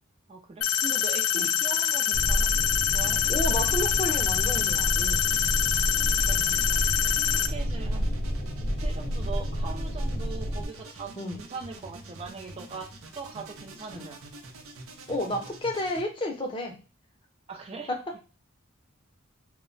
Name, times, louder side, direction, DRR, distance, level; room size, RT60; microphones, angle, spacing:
voice 1, 0.3-2.5 2.9-3.2 5.9-6.9 7.5-8.1 8.6-12.9 13.1-14.2 17.5-17.9, right 4 dB, 30° right, 1 dB, 0.4 m, -41 dB
sound 1, 0.6-7.5, left 9 dB, 85° left, 0.3 m, -25 dB
sound 2, 2.1-10.7, equal, 55° left, 0.8 m, -29 dB
sound 3, 3.0-16.0, right 2 dB, 85° right, 0.6 m, -46 dB
voice 2, 3.3-5.3 11.2-11.4 13.9-14.1 15.1-16.8 17.9-18.0, left 1 dB, 25° left, 2 dB, 0.6 m, -31 dB
2.1 x 2.1 x 3.8 m, 0.34 s
head